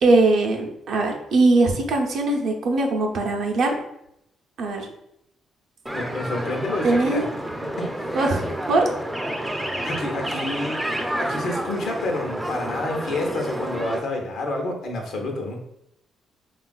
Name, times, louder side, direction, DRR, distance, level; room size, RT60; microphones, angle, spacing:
voice 1, 0.0-3.8 4.6-4.9 6.8-7.2 8.1-8.9, right 2 dB, 70° right, 2 dB, 0.5 m, -21 dB
voice 2, 5.9-7.3 7.8-8.1 9.8-10.8 11.2-15.6, left 2 dB, 70° left, 1 dB, 0.6 m, -29 dB
sound 1, 5.9-14.0, right 1 dB, 10° right, 0.4 m, -29 dB
3.4 x 2.3 x 2.2 m, 0.79 s
cardioid pair, 90°, 0 cm